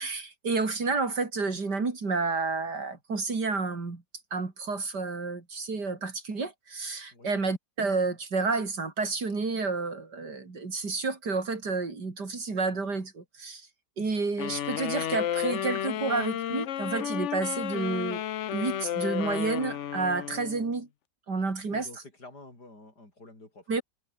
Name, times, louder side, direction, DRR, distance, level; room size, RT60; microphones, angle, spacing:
voice 1, 0.0-4.0 4.3-13.7 14.0-18.2 18.5-20.9 21.3-21.9 23.7-23.8, right 4 dB, 80° right, 4.2 m, -30 dB
sound 1, 14.4-20.8, left 11 dB, 60° left, 0.8 m, -32 dB
voice 2, 21.7-23.7, left 2 dB, 75° left, 6.9 m, -48 dB
omnidirectional pair, 1.8 m